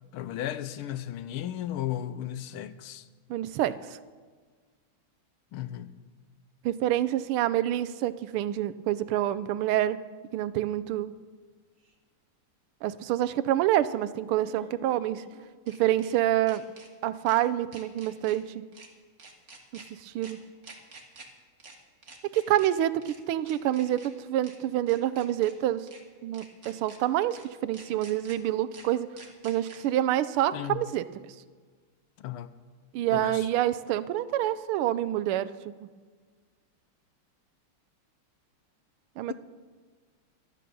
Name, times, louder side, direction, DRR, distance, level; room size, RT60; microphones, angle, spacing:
voice 1, 0.1-3.1 5.5-5.9 30.5-30.9 32.2-32.5 33.1-33.5, left 11 dB, 85° left, 1.6 m, -35 dB
voice 2, 3.3-3.7 6.6-10.0 10.3-11.1 12.8-15.2 15.7-16.6 17.0-18.6 19.7-20.4 22.3-25.9 26.2-29.1 29.4-31.0 32.9-35.5 35.8-35.9 39.2-39.3, right 13 dB, 85° right, 1.5 m, -27 dB
sound 1, 11.8-11.9 14.3-16.1 16.5-16.9 17.3-17.4 17.7-18.4 18.7-18.9 19.2-19.9 20.2-20.3 20.6-21.3 21.6-21.8 22.0-22.7 23.0-23.2 23.5-24.1 24.4-24.6 24.9-25.5 25.9-26.0 26.3-27.0 27.3-27.4 27.7-28.4 28.7-28.9 29.2-29.8, right 3 dB, 35° right, 1.9 m, -49 dB
12.5 x 12.5 x 6.9 m
omnidirectional pair, 2.4 m